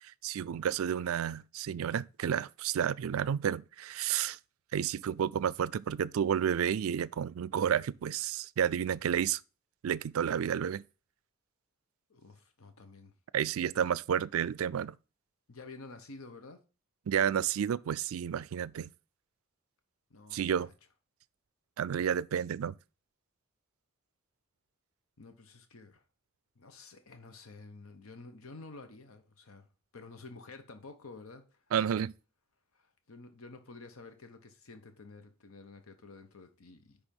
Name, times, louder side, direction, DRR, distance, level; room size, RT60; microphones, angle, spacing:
voice 1, 0.0-4.4 4.7-9.4 9.8-10.8 13.3-14.9 17.1-18.9 20.3-20.7 21.8-22.7 31.7-32.1, right 8 dB, 80° right, 0.3 m, -31 dB
voice 2, 12.1-13.1 15.5-16.6 20.1-20.7 25.2-26.0 26.6-29.7 29.9-31.9 32.7-37.0, left 3 dB, 85° left, 0.9 m, -50 dB
10.0 x 3.5 x 5.2 m
head